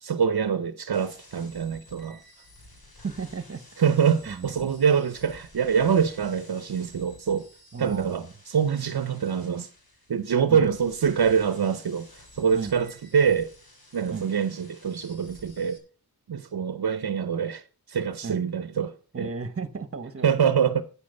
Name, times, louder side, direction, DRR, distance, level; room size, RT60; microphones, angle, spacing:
voice 1, 0.0-2.2 3.8-7.5 7.8-9.7 10.1-13.5 13.9-15.8 16.3-19.3 20.2-20.8, right 7 dB, 70° right, 0.7 m, -25 dB
sound 1, 0.9-15.8, left 1 dB, 65° left, 3.1 m, -52 dB
voice 2, 3.0-3.6 4.3-4.7 7.7-8.3 10.5-10.7 12.5-12.8 14.1-14.3 18.2-18.4 19.1-20.3, right 5 dB, 35° right, 1.1 m, -34 dB
8.6 x 8.6 x 5.4 m
wide cardioid pair, 80°, 39 cm